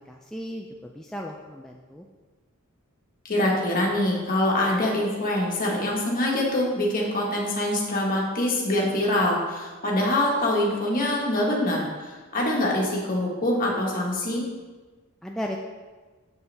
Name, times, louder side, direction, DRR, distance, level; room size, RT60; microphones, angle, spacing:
voice 1, 0.1-2.1 15.2-15.6, equal, ahead, 0 dB, 0.3 m, -35 dB
voice 2, 3.2-14.4, left 1 dB, 40° left, -2 dB, 1.5 m, -24 dB
7.0 x 6.6 x 3.4 m, 1.3 s
head